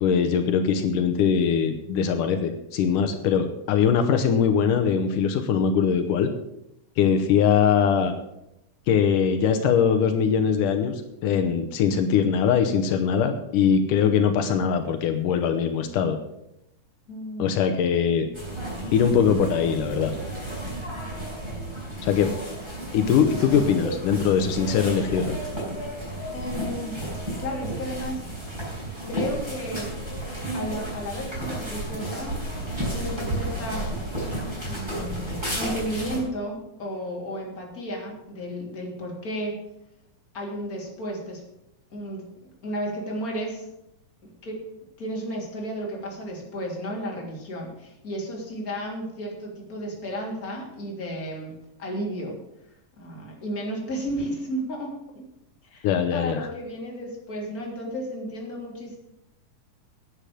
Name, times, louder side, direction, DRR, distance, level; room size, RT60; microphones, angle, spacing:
voice 1, 0.0-6.3 7.0-8.1 8.9-16.2 17.4-18.3 18.9-20.1 22.0-22.3 22.9-25.4 55.8-56.5, left 7 dB, 85° left, 7 dB, 2.5 m, -22 dB
voice 2, 17.1-17.6 26.3-27.0 27.4-28.2 29.1-29.9 30.5-32.4 32.9-33.9 34.6-39.6 40.3-41.4 41.9-42.2 42.6-43.7 44.2-44.6 45.0-51.5 51.8-52.4 53.0-54.9 55.7-59.0, equal, 25° left, -2 dB, 3.4 m, -33 dB
sound 1, 18.3-36.2, right 1 dB, 10° right, 5.8 m, -32 dB
10.0 x 9.0 x 7.8 m, 0.84 s
omnidirectional pair, 3.6 m